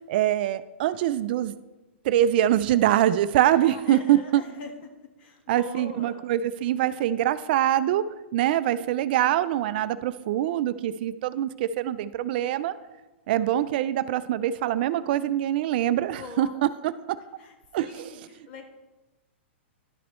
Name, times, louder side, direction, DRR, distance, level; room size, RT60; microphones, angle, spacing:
voice 1, 0.1-1.5 2.0-4.4 5.5-12.8 13.3-17.2 17.7-18.1, right 12 dB, 50° right, 14 dB, 0.3 m, -24 dB
voice 2, 3.5-4.7 5.2-6.2 16.1-16.6 17.4-18.6, left 5 dB, 55° left, 4 dB, 1.5 m, -42 dB
11.5 x 5.9 x 3.1 m, 1.1 s
hypercardioid pair, 140°, 7 cm